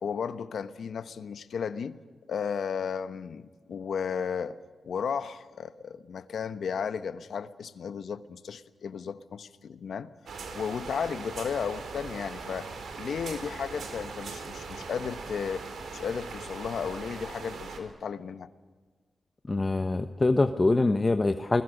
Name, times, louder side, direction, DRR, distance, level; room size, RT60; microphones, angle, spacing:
voice 1, 0.0-2.0 2.3-4.6 4.8-10.1 10.5-12.7 13.0-15.6 15.9-18.5, left 6 dB, 75° left, 12 dB, 1.1 m, -34 dB
sound 1, 10.3-17.8, right 4 dB, 80° right, 4.0 m, -40 dB
voice 2, 19.5-21.6, left 2 dB, 30° left, 8 dB, 1.0 m, -24 dB
28.5 x 21.0 x 6.6 m, 1.5 s
cardioid pair, 85°, 0 cm